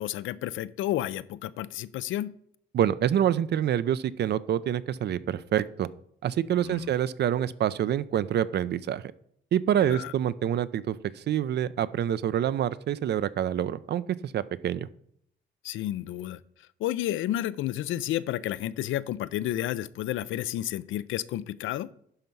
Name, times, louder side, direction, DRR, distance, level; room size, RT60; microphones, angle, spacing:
voice 1, 0.0-2.3 6.6-6.9 9.8-10.1 15.6-16.4 16.8-21.9, left 13 dB, 80° left, 16 dB, 0.5 m, -31 dB
voice 2, 2.7-5.9 6.2-9.0 9.5-14.9, right 10 dB, 55° right, 16 dB, 0.5 m, -27 dB
11.5 x 4.5 x 5.4 m, 0.69 s
cardioid pair, 90°, 20 cm